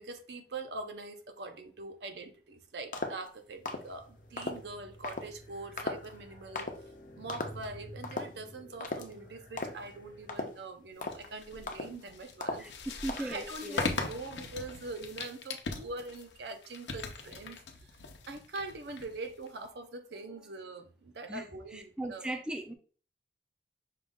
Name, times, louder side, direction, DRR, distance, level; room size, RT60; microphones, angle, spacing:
voice 1, 0.0-6.7 7.2-12.7 13.2-18.0 18.3-22.3, right 2 dB, 80° right, 0.7 m, -43 dB
sound 1, 2.9-3.3 3.7-3.9 4.4-4.6 5.0-5.3 5.8-6.2 6.6-6.8 7.3-7.7 8.0-8.4 8.8-9.1 9.6-9.9 10.3-10.6 11.0-11.3 11.7-12.0 12.4-12.7 13.1-13.4, left 2 dB, 45° left, 0.6 m, -37 dB
sound 2, 3.4-10.9, equal, 65° left, 0.9 m, -52 dB
sound 3, 11.0-19.7, left 3 dB, 90° left, 0.7 m, -40 dB
voice 2, 13.0-13.9 21.3-21.4 21.7-22.7, right 1 dB, 5° right, 0.4 m, -38 dB
5.6 x 2.4 x 3.5 m
head